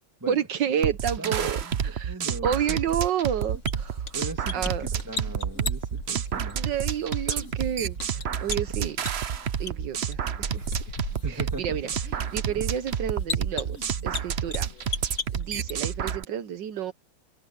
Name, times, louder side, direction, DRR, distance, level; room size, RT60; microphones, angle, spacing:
voice 1, 0.3-2.1 2.4-4.2 4.5-4.9 6.5-9.0 9.6-10.8 11.3-11.9 12.3-14.7 15.3-16.9, right 9 dB, 75° right, 1.6 m, -30 dB
sound 1, 0.8-16.2, right 8 dB, 50° right, 0.9 m, -29 dB
voice 2, 1.2-2.8 4.1-6.6 11.2-11.8 12.5-12.6, right 2 dB, 10° right, 2.4 m, -39 dB
sound 2, 3.4-16.2, left 4 dB, 40° left, 2.1 m, -39 dB
omnidirectional pair, 2.0 m